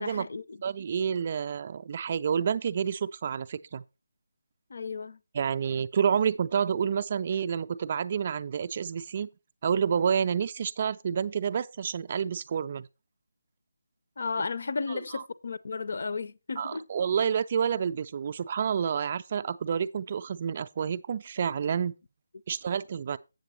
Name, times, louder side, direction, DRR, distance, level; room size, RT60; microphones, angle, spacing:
voice 1, 0.0-0.6 4.7-5.2 14.2-16.9, left 4 dB, 50° left, 0.5 m, -34 dB
voice 2, 0.6-3.8 5.3-9.3 9.6-12.9 14.9-15.2 16.6-21.9 22.5-23.2, right 7 dB, 30° right, 0.4 m, -29 dB
7.8 x 7.2 x 4.1 m
figure-of-eight pair, 155°, 0 cm